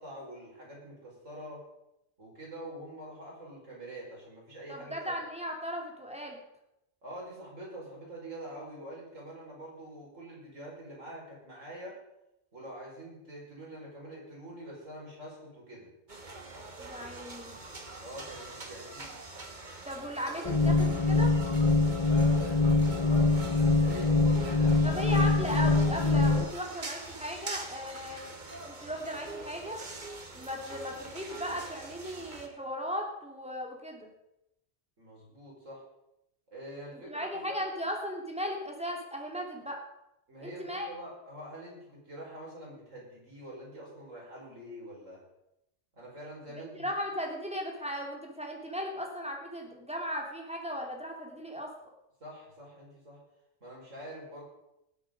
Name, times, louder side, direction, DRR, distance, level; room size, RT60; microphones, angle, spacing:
voice 1, 0.0-1.6 2.2-5.1 7.0-12.0 12.5-15.9 18.0-19.1 22.1-25.0 35.0-35.8 36.5-37.6 40.3-45.2 45.9-46.9 52.2-53.2 53.6-54.4, right 1 dB, 90° right, -4 dB, 5.4 m, -45 dB
voice 2, 4.7-6.4 16.8-17.6 19.8-21.4 24.8-29.8 30.3-34.1 36.9-39.8 40.4-40.9 46.7-51.7, equal, 5° right, 0 dB, 2.5 m, -37 dB
sound 1, 16.1-32.5, right 2 dB, 40° right, 1.6 m, -44 dB
sound 2, 20.4-26.4, left 3 dB, 25° left, 1.0 m, -24 dB
19.0 x 7.9 x 5.2 m, 0.85 s
omnidirectional pair, 1.3 m